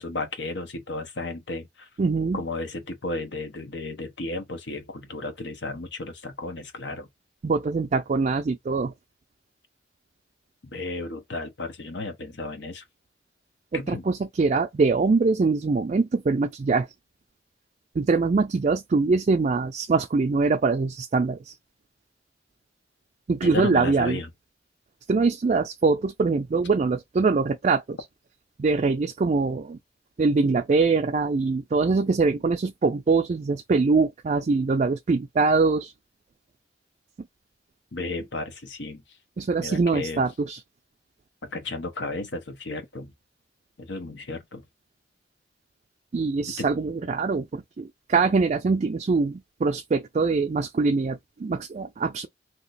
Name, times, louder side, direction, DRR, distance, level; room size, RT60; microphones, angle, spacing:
voice 1, 0.0-1.9 2.3-7.1 10.6-12.8 13.7-14.1 23.4-24.3 37.9-39.0 39.6-40.2 41.4-43.1 43.8-44.6 46.6-46.7, left 2 dB, 75° left, 0.9 m, -33 dB
voice 2, 2.0-2.4 7.4-8.9 13.7-16.9 18.0-21.5 23.3-24.2 25.1-28.0 28.6-29.8 30.2-35.9 39.4-40.6 46.1-52.3, right 4 dB, 40° right, 0.3 m, -23 dB
2.9 x 2.0 x 4.0 m
head